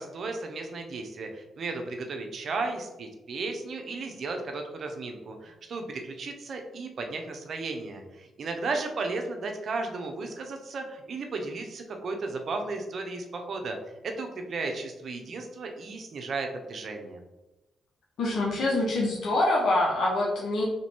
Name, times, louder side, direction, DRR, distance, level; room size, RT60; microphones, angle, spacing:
voice 1, 0.0-13.8 14.0-17.2, right 3 dB, 60° right, 4 dB, 0.8 m, -34 dB
voice 2, 18.2-20.6, left 2 dB, 70° left, -3 dB, 0.8 m, -25 dB
3.3 x 3.0 x 4.3 m, 0.99 s
cardioid pair, 65°, 0 cm